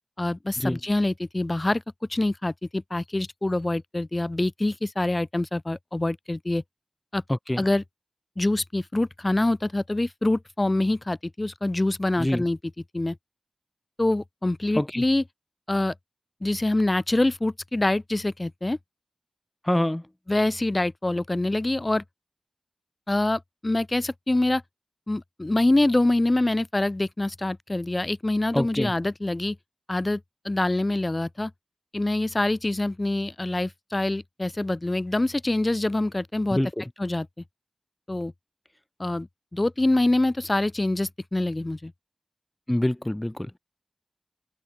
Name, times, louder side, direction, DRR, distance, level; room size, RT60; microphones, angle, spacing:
voice 1, 0.2-1.8 2.1-6.6 7.1-7.2 7.6-7.8 8.4-12.6 12.9-13.2 14.0-15.2 15.7-15.9 16.4-18.8 20.3-22.0 23.1-24.6 25.1-29.6 29.9-31.5 31.9-36.6 37.0-37.3 38.1-38.3 39.0-41.9, left 2 dB, 35° left, 1.3 m, -25 dB
voice 2, 7.3-7.6 12.2-12.4 14.7-15.0 19.6-20.0 28.5-28.9 36.5-36.8 42.7-43.6, left 1 dB, 20° left, 1.6 m, -25 dB
wide cardioid pair, 45°, 0 cm